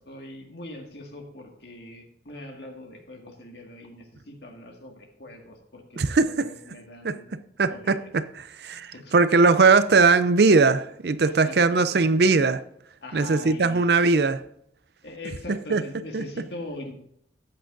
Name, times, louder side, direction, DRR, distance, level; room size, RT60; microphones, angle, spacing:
voice 1, 0.0-7.3 7.7-8.0 8.9-9.2 11.2-11.9 13.0-13.9 15.0-16.9, left 2 dB, 65° left, 1.9 m, -41 dB
voice 2, 6.0-6.5 7.0-7.2 7.6-12.6 13.1-14.4 15.5-15.8 16.1-16.2, right 4 dB, 65° right, 0.5 m, -20 dB
13.0 x 8.7 x 2.6 m
head